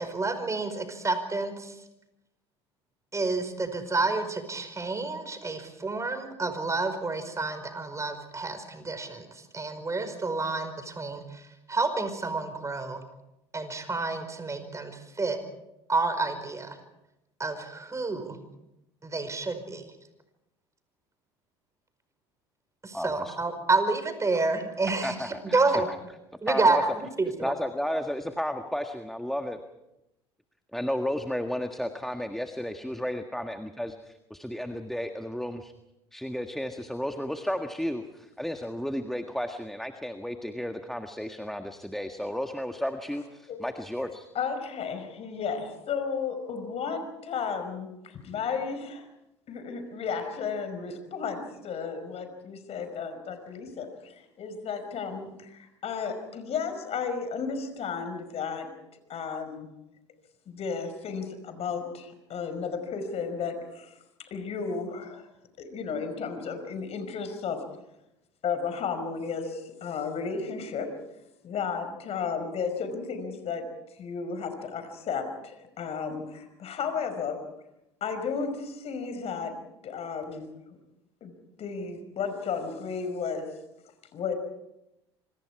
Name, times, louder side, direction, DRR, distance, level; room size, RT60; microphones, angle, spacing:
voice 1, 0.0-1.7 3.1-13.0 13.5-15.4 15.9-16.8 17.4-18.4 19.0-19.8 22.8-25.9 26.4-27.5, right 3 dB, 20° right, 9 dB, 5.1 m, -29 dB
voice 2, 22.9-23.4 25.0-25.8 26.5-26.8 27.4-29.6 30.7-35.7 36.1-44.3, equal, ahead, 6 dB, 1.6 m, -33 dB
voice 3, 44.3-49.1 49.5-58.7 59.1-59.7 60.4-63.9 64.3-65.2 65.6-67.6 68.4-70.9 71.4-73.6 74.0-77.4 78.0-79.5 79.8-80.5 81.2-81.3 81.6-83.5 84.1-84.3, left 5 dB, 50° left, 8 dB, 5.2 m, -33 dB
27.0 x 25.5 x 4.9 m, 0.90 s
hypercardioid pair, 70°, 14 cm